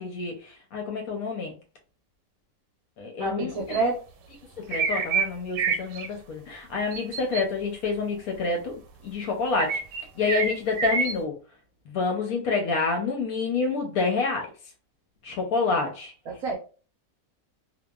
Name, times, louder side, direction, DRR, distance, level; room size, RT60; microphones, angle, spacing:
voice 1, 0.0-1.5 3.0-3.8 4.7-8.7 9.0-9.8 10.2-11.3 11.9-14.5 15.2-16.1, left 4 dB, 70° left, 2 dB, 0.9 m, -28 dB
voice 2, 3.2-4.0 16.3-16.6, right 3 dB, 65° right, 0 dB, 0.9 m, -27 dB
sound 1, 3.7-3.8 4.7-5.3 5.5-6.1 6.9-7.4 9.6-11.1, right 5 dB, 90° right, 1.2 m, -27 dB
2.8 x 2.2 x 2.2 m, 0.36 s
omnidirectional pair, 1.8 m